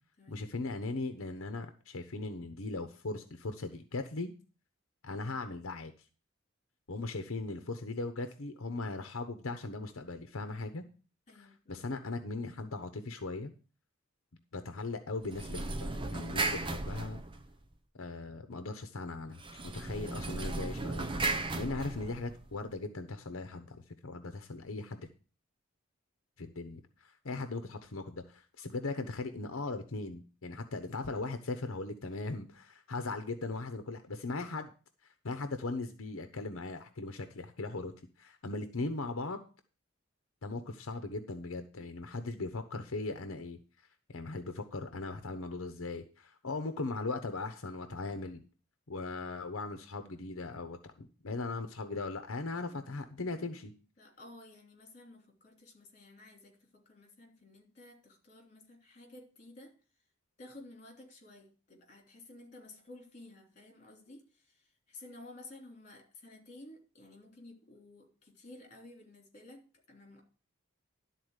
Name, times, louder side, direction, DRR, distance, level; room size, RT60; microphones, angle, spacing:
voice 1, 0.3-4.3 5.0-5.9 6.9-10.8 11.3-13.5 14.5-17.2 17.9-25.1 26.4-34.7 35.0-39.4 40.4-43.6 44.1-48.4 48.9-53.7, left 3 dB, 80° left, 0.9 m, -39 dB
voice 2, 11.3-11.8 52.7-52.8 54.0-59.8 60.4-70.2, left 2 dB, 35° left, 3.2 m, -54 dB
sound 1, 15.2-17.7 19.4-22.5, right 2 dB, 25° right, 0.6 m, -36 dB
12.0 x 4.2 x 8.1 m
head